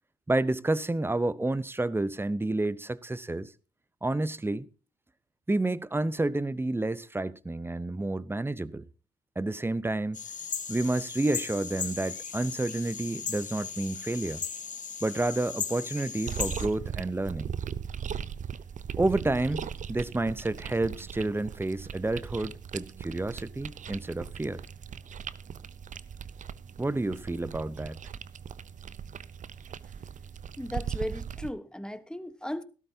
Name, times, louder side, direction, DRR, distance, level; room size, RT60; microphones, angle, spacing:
voice 1, 0.3-3.5 4.0-4.7 5.5-8.8 9.4-10.2 10.7-14.4 15.0-17.5 19.0-24.6 26.8-28.0, right 2 dB, 15° right, 0.8 m, -30 dB
sound 1, 10.1-16.7, left 6 dB, 50° left, 1.8 m, -37 dB
sound 2, 16.3-31.5, right 7 dB, 50° right, 0.7 m, -39 dB
voice 2, 30.6-32.6, left 1 dB, 5° left, 1.3 m, -36 dB
16.0 x 13.0 x 2.9 m
supercardioid pair, 60°, 16 cm